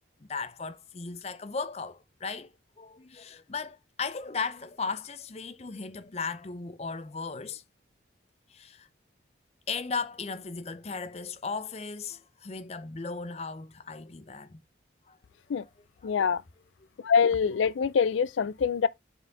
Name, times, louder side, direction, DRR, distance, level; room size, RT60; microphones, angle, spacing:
voice 1, 0.3-2.5 2.8-7.6 8.5-8.9 9.7-14.6 15.1-15.2 15.5-15.7 16.0-16.1, left 4 dB, 35° left, 0.5 m, -36 dB
voice 2, 16.0-16.4 17.0-18.9, left 6 dB, 85° left, 0.4 m, -24 dB
6.8 x 4.4 x 3.4 m
head